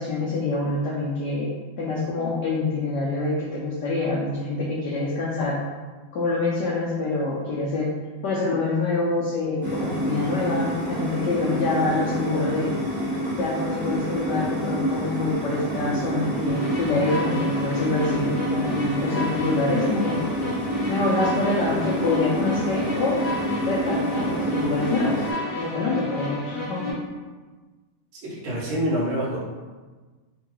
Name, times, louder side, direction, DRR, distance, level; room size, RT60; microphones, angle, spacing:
voice 1, 0.0-1.5 1.8-5.6 6.1-8.0 8.2-12.7 13.4-20.2 20.9-23.2 23.7-25.2 25.6-26.9, left 3 dB, 90° left, -5 dB, 0.9 m, -26 dB
sound 1, 9.6-25.3, right 1 dB, 35° right, 0.4 m, -28 dB
sound 2, 16.5-26.9, left 2 dB, 65° left, 1.2 m, -31 dB
voice 2, 28.2-29.4, equal, 70° right, -5 dB, 1.5 m, -26 dB
3.7 x 2.2 x 2.9 m, 1.3 s
omnidirectional pair, 2.4 m